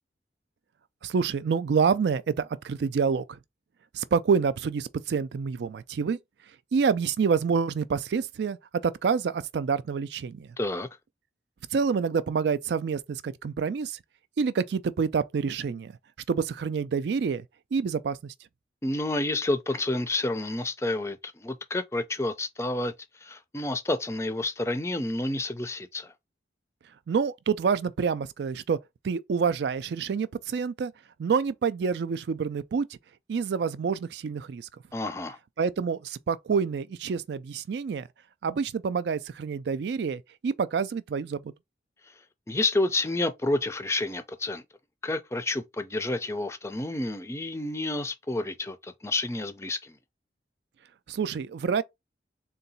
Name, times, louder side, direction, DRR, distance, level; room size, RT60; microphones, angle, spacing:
voice 1, 1.0-3.4 3.9-6.2 6.7-8.6 8.8-10.5 11.7-14.0 14.4-15.9 16.3-17.4 17.7-18.3 27.1-28.8 29.0-30.9 31.2-32.9 33.3-34.7 35.6-38.1 38.4-41.5 51.1-51.8, right 5 dB, 70° right, 0.3 m, -27 dB
voice 2, 10.6-10.9 18.8-22.9 23.2-26.1 34.9-35.4 42.5-44.6 45.0-50.0, left 2 dB, 15° left, 0.4 m, -29 dB
3.9 x 2.3 x 4.0 m
head